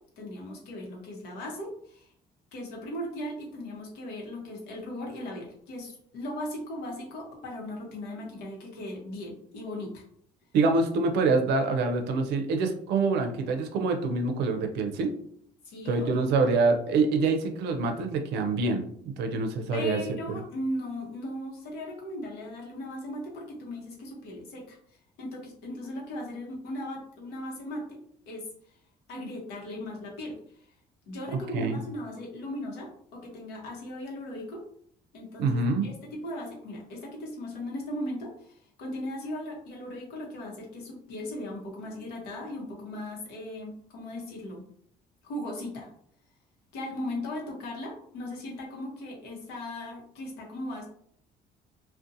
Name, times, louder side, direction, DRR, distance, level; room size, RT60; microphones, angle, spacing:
voice 1, 0.2-2.1 2.5-10.0 15.6-16.1 19.7-24.8 25.2-28.0 28.3-28.4 29.1-30.4 31.1-34.6 35.1-44.6 45.2-45.9 46.7-50.9, left 1 dB, 90° left, -1 dB, 0.8 m, -38 dB
voice 2, 10.5-15.1 15.9-18.8 19.2-20.0 20.3-20.4 29.1-29.3 31.5-31.8 35.4-35.9, right 3 dB, 80° right, 5 dB, 0.5 m, -25 dB
2.6 x 2.1 x 2.5 m, 0.65 s
cardioid pair, 110°, 17 cm